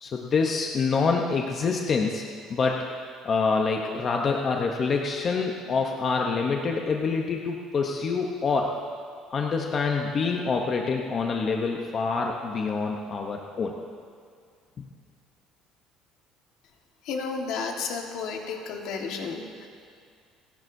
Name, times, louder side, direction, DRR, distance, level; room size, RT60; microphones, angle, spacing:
voice 1, 0.0-2.2 2.5-2.8 3.2-8.7 9.3-13.7 14.8-14.9, left 4 dB, 30° left, 1 dB, 0.8 m, -26 dB
voice 2, 17.0-19.7, left 5 dB, 60° left, 2 dB, 1.5 m, -32 dB
30.0 x 11.0 x 2.7 m, 2.2 s
cardioid pair, 170°, 0 cm